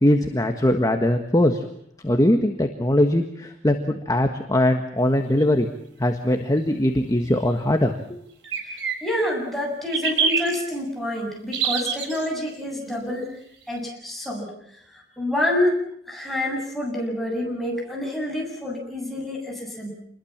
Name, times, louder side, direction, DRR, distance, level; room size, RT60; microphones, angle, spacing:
voice 1, 0.0-1.6 2.0-5.7 6.0-8.2, left 1 dB, 20° left, 5 dB, 1.6 m, -21 dB
sound 1, 5.4-5.5 8.4-9.3 9.9-10.5 11.5-12.3, right 6 dB, 75° right, 3.7 m, -24 dB
voice 2, 8.6-13.3 13.7-14.5 14.9-19.9, left 1 dB, ahead, -1 dB, 7.8 m, -27 dB
27.5 x 21.5 x 7.4 m, 0.69 s
head